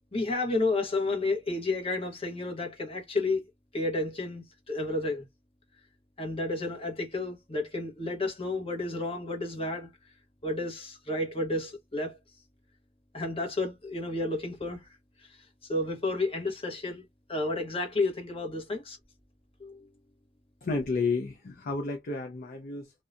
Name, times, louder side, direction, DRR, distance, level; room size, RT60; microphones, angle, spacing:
voice 1, 0.1-3.4 3.7-5.2 6.2-9.9 10.4-12.2 13.1-14.8 15.7-17.0 17.3-19.0 19.6-19.9, left 2 dB, 25° left, 1.0 m, -31 dB
voice 2, 20.6-22.9, left 4 dB, 45° left, 0.5 m, -31 dB
2.7 x 2.1 x 2.4 m
head